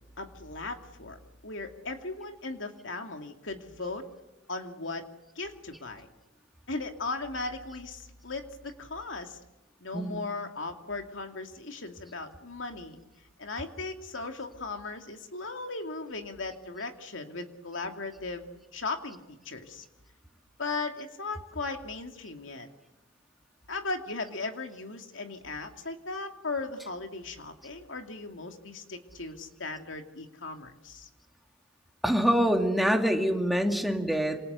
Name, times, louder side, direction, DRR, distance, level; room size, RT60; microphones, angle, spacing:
voice 1, 0.2-1.2 1.4-4.0 4.5-5.0 5.4-6.1 6.7-9.4 9.8-13.0 13.4-19.8 20.6-22.7 23.7-31.1, left 3 dB, 75° left, 5 dB, 2.6 m, -37 dB
voice 2, 9.9-10.2 32.0-34.4, equal, ahead, 3 dB, 2.4 m, -25 dB
28.0 x 27.5 x 7.0 m, 1.0 s
head